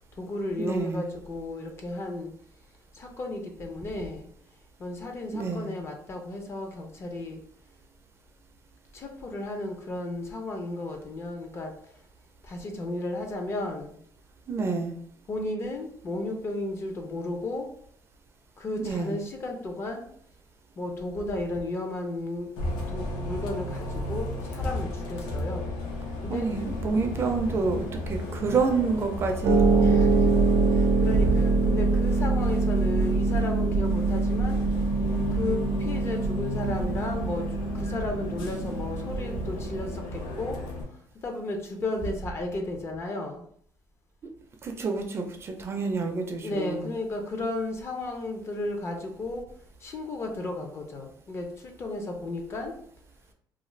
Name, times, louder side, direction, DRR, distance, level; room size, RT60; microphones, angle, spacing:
voice 1, 0.0-2.3 2.9-4.3 4.8-7.4 8.9-11.7 12.4-14.0 15.3-17.7 18.6-20.0 20.8-22.6 22.9-25.7 26.2-26.5 29.8-30.4 30.7-34.6 35.0-40.6 41.1-43.4 46.4-49.5 49.8-52.7, left 2 dB, 35° left, 3 dB, 0.5 m, -34 dB
voice 2, 0.6-1.0 5.3-5.7 14.5-15.0 18.8-19.2 26.3-29.6 44.6-46.9, right 4 dB, 35° right, 4 dB, 0.4 m, -28 dB
Bus, 22.6-40.8, left 2 dB, 80° left, 0.7 m, -34 dB
Harp, 29.4-40.0, right 3 dB, 85° right, 0.5 m, -24 dB
2.4 x 2.3 x 3.1 m, 0.63 s
cardioid pair, 135°, 8 cm